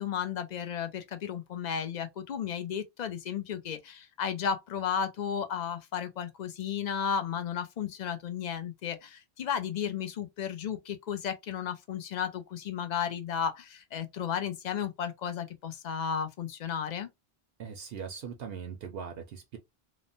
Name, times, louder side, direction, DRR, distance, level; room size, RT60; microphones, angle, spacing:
voice 1, 0.0-17.1, left 8 dB, 55° left, 0.5 m, -34 dB
voice 2, 17.6-19.6, right 6 dB, 70° right, 0.8 m, -40 dB
3.0 x 2.0 x 2.5 m
omnidirectional pair, 1.1 m